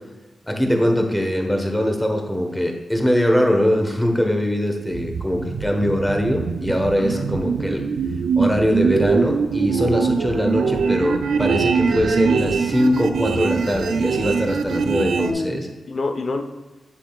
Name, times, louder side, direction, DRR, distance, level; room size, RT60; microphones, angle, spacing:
voice 1, 0.4-7.9 8.4-15.7, equal, 5° left, 3 dB, 1.2 m, -22 dB
sound 1, 4.9-15.3, right 5 dB, 80° right, 0.4 m, -22 dB
voice 2, 7.0-7.3 15.2-16.4, left 3 dB, 55° left, 5 dB, 0.8 m, -28 dB
7.6 x 7.3 x 2.4 m, 1.2 s
cardioid pair, 70°, 0 cm